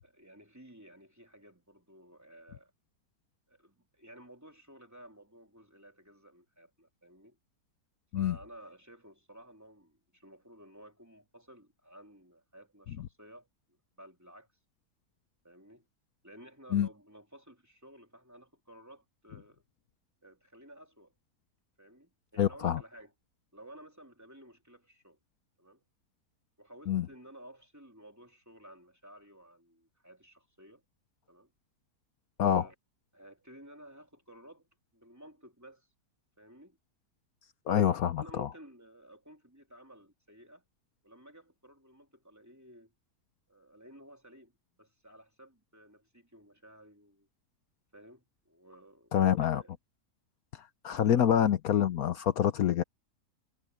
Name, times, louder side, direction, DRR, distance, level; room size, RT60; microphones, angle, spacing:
voice 1, 0.0-2.7 3.5-7.4 8.1-13.5 14.0-14.5 15.4-15.9 16.2-19.6 20.2-21.1 21.8-23.1 23.5-25.2 25.6-25.8 26.6-30.8 31.3-31.5 32.4-32.7 33.1-34.7 34.9-35.9 36.4-36.8 38.2-40.6 41.0-42.9 43.5-47.3 47.9-49.1 49.5-49.7 51.1-51.3, right 1 dB, 10° right, 3.5 m, -54 dB
voice 2, 22.4-22.8 26.9-27.1 32.4-32.7 37.7-38.5 49.1-49.6 50.5-52.8, left 9 dB, 70° left, 1.2 m, -27 dB
omnidirectional pair, 1.7 m